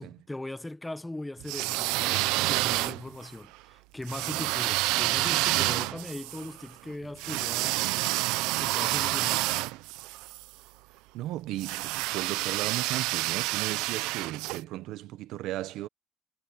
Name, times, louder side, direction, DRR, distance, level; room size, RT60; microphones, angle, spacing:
voice 1, 0.0-7.8 8.6-9.5, left 1 dB, 5° left, 0.9 m, -39 dB
sound 1, 1.4-3.3 4.1-10.4 11.6-14.6, right 20 dB, 90° right, 0.6 m, -28 dB
voice 2, 11.1-15.9, right 15 dB, 70° right, 1.0 m, -36 dB
cardioid pair, 140°, 0 cm